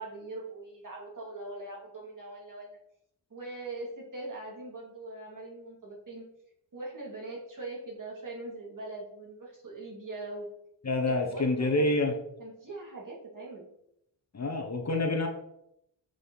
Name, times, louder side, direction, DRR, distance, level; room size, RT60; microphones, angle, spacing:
voice 1, 0.0-2.8 3.3-6.2 6.7-10.5 11.1-12.0 12.4-13.7, right 2 dB, 45° right, -3 dB, 2.6 m, -41 dB
voice 2, 10.8-12.1 14.3-15.3, left 2 dB, 35° left, 3 dB, 1.0 m, -27 dB
7.7 x 5.0 x 4.0 m, 0.78 s
wide cardioid pair, 125°, 44 cm